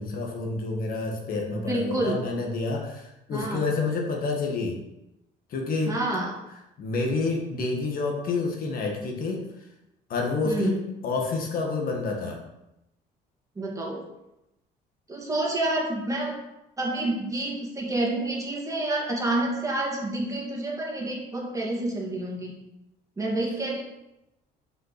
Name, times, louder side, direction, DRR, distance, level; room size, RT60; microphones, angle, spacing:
voice 1, 0.0-4.8 5.5-6.0 6.8-9.5 10.1-10.8 11.0-12.4, left 3 dB, 60° left, 1 dB, 1.7 m, -28 dB
voice 2, 1.5-2.2 3.3-3.7 5.9-6.3 10.4-10.8 13.6-14.0 15.1-16.3 16.8-22.5 23.2-23.8, right 2 dB, 20° right, -2 dB, 2.2 m, -28 dB
5.8 x 5.5 x 5.9 m, 0.90 s
cardioid pair, 110°, 17 cm